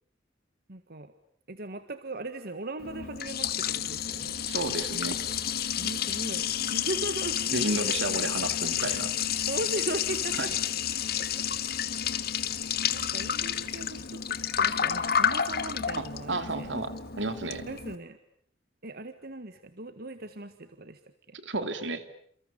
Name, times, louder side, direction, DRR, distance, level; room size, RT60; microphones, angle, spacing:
voice 1, 0.7-1.1 1.5-4.3 5.8-7.4 9.4-10.5 11.2-11.3 12.1-12.6 12.9-16.7 17.7-18.2 18.8-21.0 21.3-21.4, right 2 dB, 60° right, 10 dB, 1.6 m, -38 dB
Liquid, 2.8-18.0, left 9 dB, 60° left, 1.5 m, -30 dB
voice 2, 4.5-5.2 7.5-9.1 10.4-10.5 16.0-17.6 21.4-22.0, right 2 dB, 80° right, 9 dB, 3.0 m, -32 dB
29.0 x 28.5 x 7.0 m, 0.64 s
head